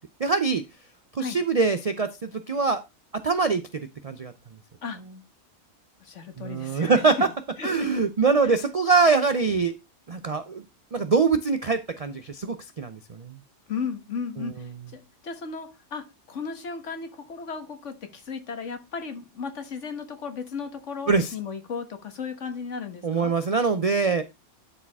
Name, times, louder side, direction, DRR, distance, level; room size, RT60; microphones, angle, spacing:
voice 1, 0.2-0.6 1.1-2.8 3.1-4.3 6.4-7.3 7.6-9.7 10.1-10.6 10.9-13.4 14.4-14.5 21.1-21.3 23.0-24.2, right 4 dB, 50° right, 10 dB, 0.4 m, -23 dB
voice 2, 6.0-7.0 7.6-7.7 8.4-8.6 13.7-23.3, left 5 dB, 60° left, 8 dB, 1.6 m, -35 dB
11.5 x 4.9 x 3.5 m, 0.23 s
omnidirectional pair, 1.5 m